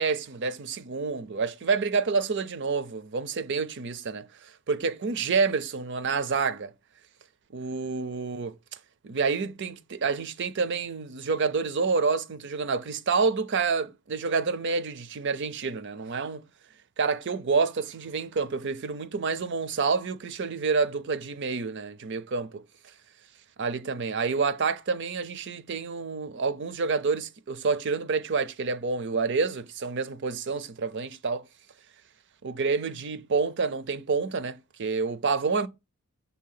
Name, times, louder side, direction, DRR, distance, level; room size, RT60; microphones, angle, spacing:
voice 1, 0.0-6.7 7.5-8.5 9.0-16.4 17.0-22.9 23.6-31.4 32.4-35.7, right 4 dB, 50° right, 0.5 m, -28 dB
6.7 x 2.8 x 5.7 m
head